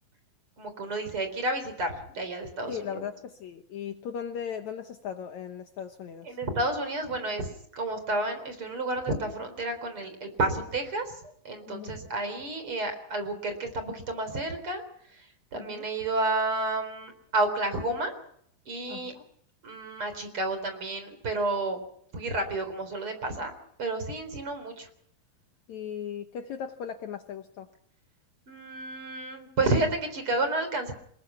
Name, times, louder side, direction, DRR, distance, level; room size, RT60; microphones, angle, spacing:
voice 1, 0.6-3.1 6.2-11.1 11.4-14.8 15.1-15.3 15.5-18.1 18.7-19.1 19.6-21.8 22.1-23.5 23.8-24.9 28.5-30.9, right 2 dB, 35° right, 8 dB, 4.6 m, -30 dB
voice 2, 2.7-6.4 11.7-11.9 15.5-15.9 18.9-19.3 25.7-27.7, left 8 dB, 65° left, 7 dB, 2.1 m, -38 dB
27.0 x 21.0 x 5.7 m, 0.66 s
omnidirectional pair, 4.1 m